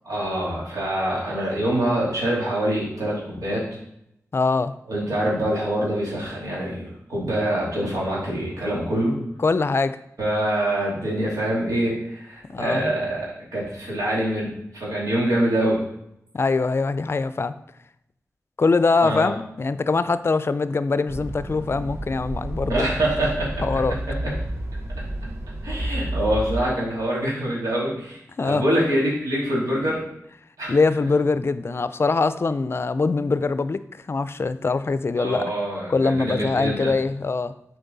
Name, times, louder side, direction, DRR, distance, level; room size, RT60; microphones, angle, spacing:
voice 1, 0.0-3.7 4.9-9.2 10.2-15.8 19.0-19.3 22.7-24.0 24.2-24.3 25.6-30.0 30.6-30.8 35.2-36.9, right 1 dB, 90° right, -5 dB, 2.8 m, -25 dB
voice 2, 4.3-4.7 9.4-10.0 12.5-12.9 16.3-17.5 18.6-22.9 23.6-24.0 25.8-26.0 28.4-28.6 30.7-35.5 35.9-37.6, left 4 dB, 45° left, 13 dB, 0.4 m, -23 dB
sound 1, 21.1-26.6, right 1 dB, 45° right, 1.1 m, -30 dB
8.2 x 4.6 x 4.0 m, 0.77 s
wide cardioid pair, 70°, 6 cm